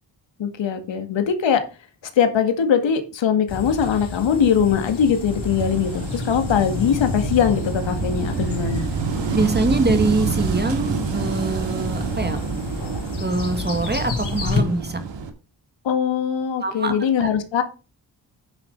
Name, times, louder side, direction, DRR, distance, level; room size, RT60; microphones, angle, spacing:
voice 1, 0.4-1.6 2.2-8.8 15.8-17.6, left 7 dB, 80° left, 7 dB, 2.0 m, -21 dB
sound 1, 3.5-14.6, left 5 dB, 60° left, 4.7 m, -31 dB
Wind / Waves surf, 5.3-15.3, right 5 dB, 75° right, 2.2 m, -27 dB
voice 2, 9.3-12.4 13.2-15.0 16.6-16.9 17.2-17.3, right 2 dB, 25° right, 7 dB, 2.2 m, -24 dB
9.6 x 6.5 x 5.2 m, 0.32 s
cardioid pair, 80°, 44 cm